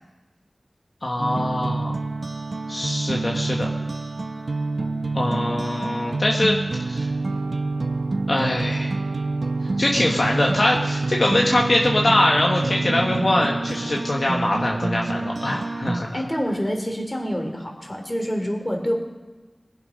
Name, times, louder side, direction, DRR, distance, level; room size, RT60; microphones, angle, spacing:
voice 1, 1.0-2.0 2.7-3.7 5.1-6.5 6.9-7.1 8.3-9.0 9.8-16.2, left 1 dB, 60° left, -1 dB, 1.4 m, -22 dB
sound 1, 1.2-16.0, right 3 dB, 75° right, 0.8 m, -27 dB
voice 2, 16.1-18.9, equal, 20° left, 2 dB, 3.1 m, -27 dB
21.5 x 7.5 x 5.3 m, 1.2 s
wide cardioid pair, 55°, 0 cm